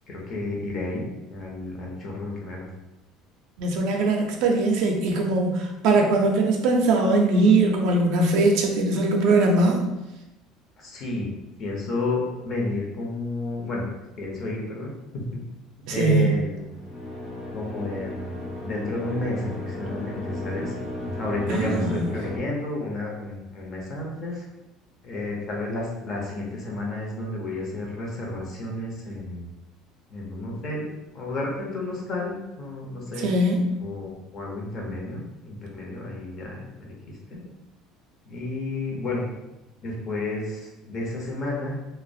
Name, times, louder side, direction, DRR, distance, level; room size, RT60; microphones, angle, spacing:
voice 1, 0.1-1.0 1.3-2.7 9.3-9.4 10.8-11.3 11.6-13.8 14.2-15.3 15.9-16.7 17.5-20.8 21.2-24.4 25.0-29.5 30.1-30.9 31.1-33.3 33.8-37.4 38.3-39.2 39.8-41.8, left 2 dB, 30° left, -2 dB, 0.6 m, -31 dB
voice 2, 3.6-9.9 15.9-16.2 21.5-22.0 33.2-33.7, right 2 dB, 60° right, 2 dB, 0.4 m, -21 dB
sound 1, 16.6-22.4, left 1 dB, 65° left, 0.7 m, -34 dB
2.3 x 2.0 x 2.6 m, 0.96 s
cardioid pair, 165°, 0 cm